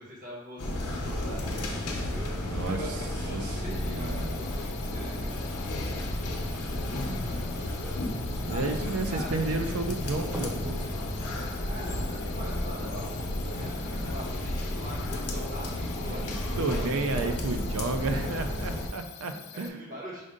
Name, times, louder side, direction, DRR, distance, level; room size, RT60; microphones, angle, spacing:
voice 1, 0.0-2.3 2.6-8.0 8.5-9.5 11.6-17.4 19.2-20.2, equal, 40° right, -4 dB, 1.4 m, -43 dB
sound 1, 0.6-18.9, left 1 dB, 85° left, 0.8 m, -32 dB
voice 2, 2.4-3.0 3.3-4.4 8.5-10.9 16.1-19.9, right 3 dB, 70° right, 6 dB, 0.5 m, -32 dB
sound 2, 3.3-13.1 13.5-13.6 14.1-14.5 14.9-15.0, right 1 dB, 10° right, 0.5 m, -49 dB
sound 3, 3.7-19.7, left 10 dB, 45° left, 0.4 m, -47 dB
5.0 x 2.6 x 3.7 m, 1.0 s
head